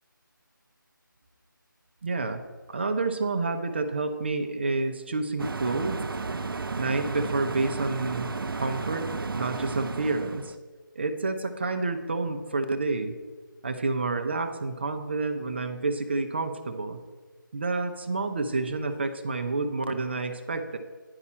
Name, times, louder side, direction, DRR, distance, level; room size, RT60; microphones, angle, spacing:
voice 1, 2.0-2.4 2.7-6.0 6.3-6.4 6.8-10.5 11.0-13.1 13.6-17.0 17.5-20.8, right 3 dB, 30° right, 6 dB, 0.5 m, -29 dB
sound 1, 5.4-10.6, right 4 dB, 90° right, 0.5 m, -33 dB
9.8 x 5.3 x 7.2 m, 1.4 s
figure-of-eight pair, 165°, 11 cm